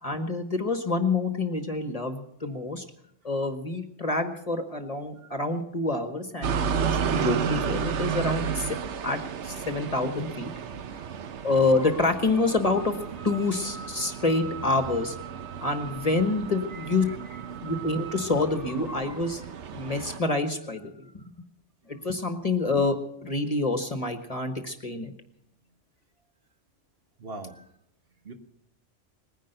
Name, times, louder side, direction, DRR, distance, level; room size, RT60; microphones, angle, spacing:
voice 1, 0.0-2.8 3.2-8.8 9.0-10.5 11.4-19.5 19.7-21.3 21.9-23.0 23.2-25.1, left 3 dB, 30° left, 7 dB, 1.3 m, -27 dB
sound 1, 6.4-20.2, right 7 dB, 70° right, 1.1 m, -33 dB
voice 2, 16.7-17.2 27.2-27.6 28.2-28.3, right 2 dB, 50° right, 5 dB, 1.5 m, -42 dB
20.0 x 10.5 x 6.7 m, 0.75 s
omnidirectional pair, 1.2 m